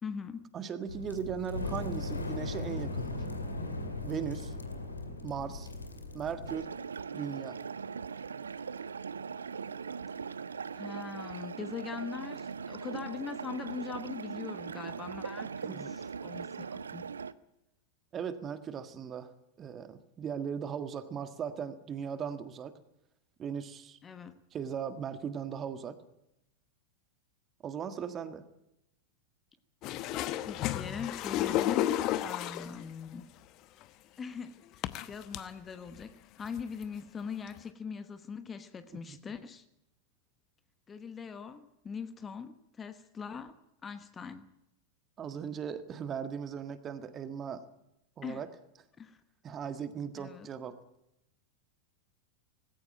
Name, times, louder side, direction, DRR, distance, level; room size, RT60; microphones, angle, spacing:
voice 1, 0.0-0.5 10.7-17.0 24.0-24.4 30.4-33.3 34.2-39.6 40.9-43.5 43.8-44.5 48.2-48.4 49.0-49.2 50.2-50.5, left 6 dB, 20° left, 1.2 m, -42 dB
voice 2, 0.5-3.2 4.0-4.5 5.2-5.7 6.1-6.7 7.1-7.6 15.6-15.9 18.1-19.3 19.6-22.7 23.4-24.0 24.5-26.0 27.6-28.4 39.1-39.2 45.2-47.6 48.2-48.5 49.4-50.8, right 7 dB, 25° right, 1.6 m, -38 dB
sound 1, 0.9-6.5, left 2 dB, 80° left, 2.3 m, -38 dB
sound 2, 6.5-17.3, right 6 dB, 70° right, 0.7 m, -40 dB
sound 3, 29.8-32.8 33.8-33.9 34.8-35.4 36.0-36.1 36.4-36.8 37.6-37.7, left 13 dB, 40° left, 0.9 m, -32 dB
19.0 x 16.5 x 9.0 m
figure-of-eight pair, 90°, 0 cm